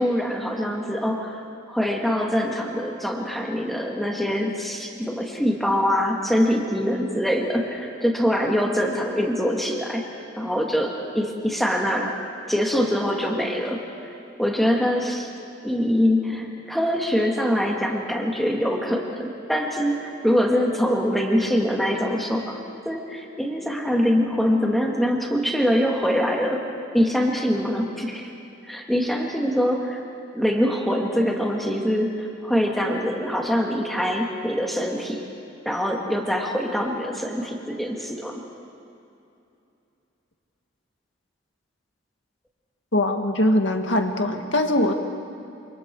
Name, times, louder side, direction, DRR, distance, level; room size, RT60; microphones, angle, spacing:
voice 1, 0.0-1.4 1.7-10.0 10.4-12.1 12.5-13.8 14.4-15.3 15.6-26.7 26.9-28.2 28.6-30.0 30.3-35.2 35.6-38.4, equal, ahead, -1 dB, 2.5 m, -24 dB
voice 2, 42.9-44.9, left 1 dB, 70° left, 4 dB, 1.9 m, -21 dB
28.5 x 27.0 x 4.9 m, 2.7 s
head